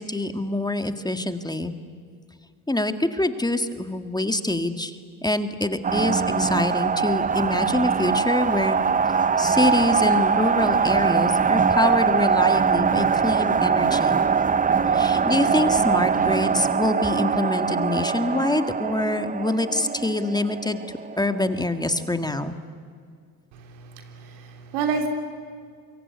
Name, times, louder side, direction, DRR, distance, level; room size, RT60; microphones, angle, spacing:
voice 1, 0.0-1.7 2.7-5.0 5.2-8.8 9.4-14.2 14.9-20.8 21.2-22.6, left 1 dB, 10° left, 8 dB, 1.8 m, -25 dB
sound 1, 5.8-21.7, right 6 dB, 20° right, 0.6 m, -22 dB
voice 2, 23.5-25.1, right 5 dB, 80° right, 5 dB, 3.3 m, -29 dB
25.0 x 23.0 x 9.6 m, 2.1 s
supercardioid pair, 65°, 40 cm